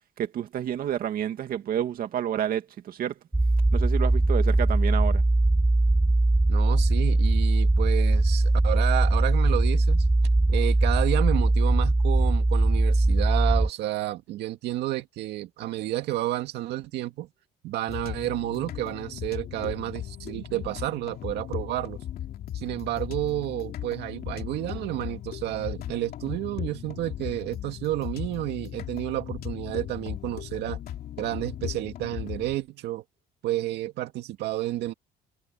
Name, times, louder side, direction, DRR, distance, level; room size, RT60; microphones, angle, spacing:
voice 1, 0.2-3.1 3.7-5.2, right 10 dB, 60° right, 2.3 m, -29 dB
sound 1, 3.3-13.7, right 2 dB, 5° right, 0.5 m, -21 dB
voice 2, 6.5-10.1 10.5-17.3 17.6-22.0 22.5-30.8 31.2-33.0 33.4-34.9, right 15 dB, 80° right, 2.2 m, -31 dB
sound 2, 17.9-32.6, left 11 dB, 65° left, 2.6 m, -37 dB
cardioid pair, 110°, 17 cm